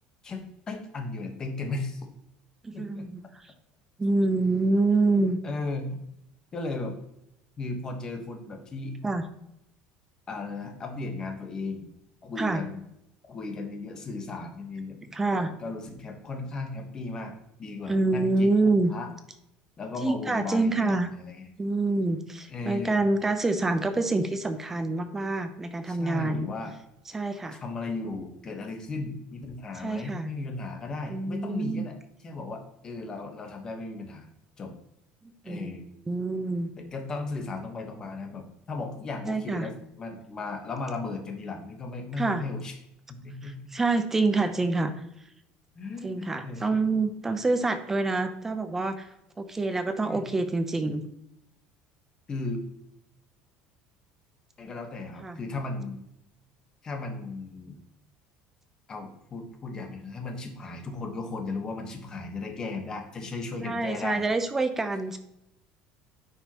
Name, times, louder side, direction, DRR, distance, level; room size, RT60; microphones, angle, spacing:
voice 1, 0.7-2.0 2.7-3.0 5.4-6.1 6.5-6.9 7.6-9.0 10.3-11.9 12.2-12.8 13.3-17.3 17.6-19.1 19.8-21.4 22.5-23.0 25.8-26.8 27.6-31.9 32.2-34.3 34.6-34.7 35.4-35.8 36.8-42.7 43.1-43.7 45.7-46.8 50.0-50.3 52.3-52.6 54.6-56.0 56.8-57.8 58.9-64.2, left 3 dB, 25° left, 4 dB, 1.2 m, -36 dB
voice 2, 2.6-3.5 4.0-5.4 9.0-9.2 12.4-12.6 15.1-15.5 17.9-18.9 20.0-21.1 21.6-26.5 27.1-27.6 29.8-30.3 31.1-31.8 35.2-35.7 36.1-36.7 39.3-39.7 42.2-42.4 43.4-44.9 46.0-49.1 49.4-51.0 55.2-55.4 63.6-65.2, right 3 dB, 10° right, 9 dB, 0.6 m, -26 dB
10.0 x 5.5 x 3.0 m, 0.80 s
cardioid pair, 160°, 3 cm